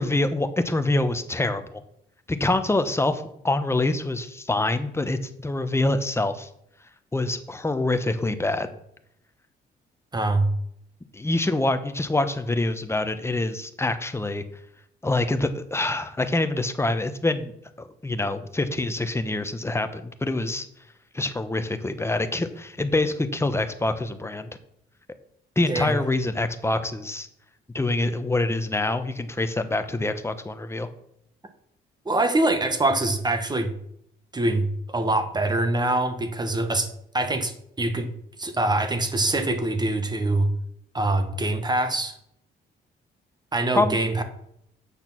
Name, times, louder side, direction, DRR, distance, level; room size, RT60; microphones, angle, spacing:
voice 1, 0.0-1.8 2.3-6.5 7.1-8.7 11.1-14.4 15.0-17.5 17.8-20.7 21.1-24.5 25.6-27.3 27.7-30.9 43.7-44.0, left 2 dB, 15° left, 9 dB, 1.0 m, -25 dB
voice 2, 10.1-10.5 25.7-26.0 32.0-33.7 34.3-38.1 38.4-40.5 40.9-42.2 43.5-44.2, right 2 dB, 20° right, 8 dB, 1.4 m, -24 dB
8.3 x 6.5 x 6.1 m, 0.74 s
cardioid pair, 90°, 20 cm